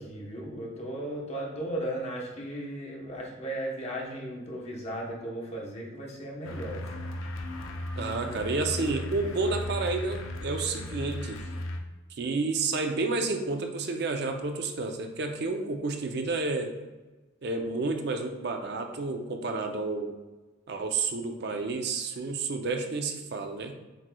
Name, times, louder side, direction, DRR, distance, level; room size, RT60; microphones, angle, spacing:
voice 1, 0.0-7.1, right 1 dB, 30° left, -2 dB, 0.9 m, -36 dB
sound 1, 6.4-11.8, left 1 dB, 80° left, 0.6 m, -36 dB
voice 2, 8.0-11.4 12.2-16.7 17.4-20.1 20.7-23.7, right 3 dB, 55° right, 5 dB, 0.5 m, -30 dB
7.7 x 3.1 x 2.2 m, 1.2 s
head